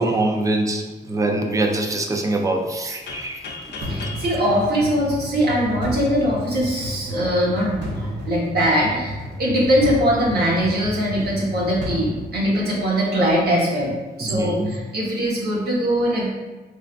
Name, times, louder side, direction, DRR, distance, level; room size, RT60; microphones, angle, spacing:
voice 1, 0.0-3.4 14.2-14.8, right 2 dB, 20° right, 2 dB, 0.4 m, -23 dB
sound 1, 3.1-5.8, left 3 dB, 75° left, 0.5 m, -37 dB
sound 2, 3.8-13.0, equal, 90° right, 0.6 m, -32 dB
voice 2, 3.9-16.3, equal, 65° right, -5 dB, 1.1 m, -21 dB
4.4 x 2.2 x 2.4 m, 1.3 s
wide cardioid pair, 130°, 18 cm